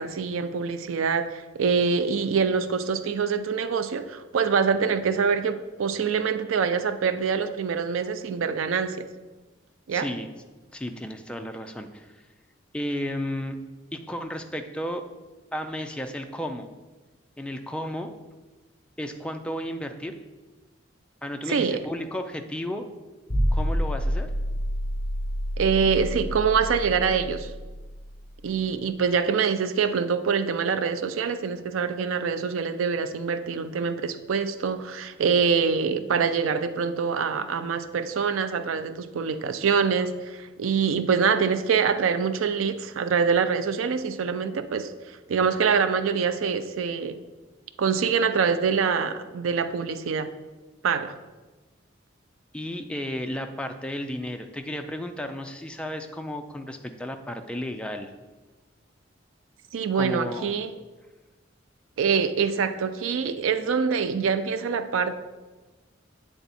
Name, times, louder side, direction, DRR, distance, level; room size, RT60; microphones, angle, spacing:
voice 1, 0.0-9.1 9.9-10.1 21.5-21.8 25.6-27.5 28.4-47.2 47.8-50.3 50.8-51.2 59.7-60.7 62.0-65.1, right 6 dB, 85° right, 11 dB, 0.4 m, -25 dB
voice 2, 9.9-10.3 10.7-12.2 12.7-13.6 13.9-15.0 15.5-16.7 17.4-18.1 19.0-20.2 21.2-22.8 23.5-24.3 52.5-58.1 59.9-60.5, equal, 5° left, 5 dB, 0.3 m, -33 dB
sound 1, 23.3-28.3, equal, 30° left, 2.2 m, -28 dB
8.1 x 3.5 x 4.1 m, 1.2 s
head